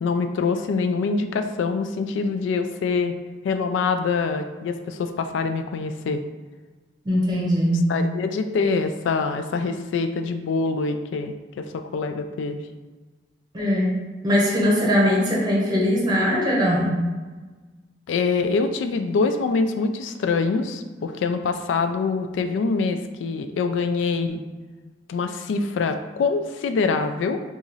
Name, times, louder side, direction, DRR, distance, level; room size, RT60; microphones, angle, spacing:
voice 1, 0.0-3.2 3.4-6.2 7.9-12.6 18.1-24.4 25.1-27.4, left 4 dB, 85° left, 8 dB, 0.3 m, -25 dB
voice 2, 7.0-7.9 13.5-17.0, equal, 25° right, -5 dB, 0.9 m, -21 dB
2.9 x 2.5 x 3.9 m, 1.3 s
head